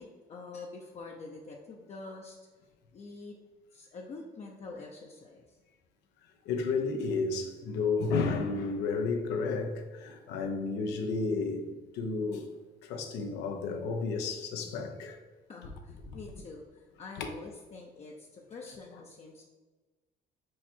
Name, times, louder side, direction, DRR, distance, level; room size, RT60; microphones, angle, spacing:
voice 1, 0.0-2.4 2.9-3.3 3.7-5.6 15.5-19.4, left 3 dB, 40° left, 0.7 m, -46 dB
voice 2, 6.4-12.5 12.8-15.2 16.1-16.2 17.2-17.3, left 4 dB, 90° left, 0.9 m, -32 dB
4.8 x 4.5 x 4.4 m
cardioid pair, 110°, 17 cm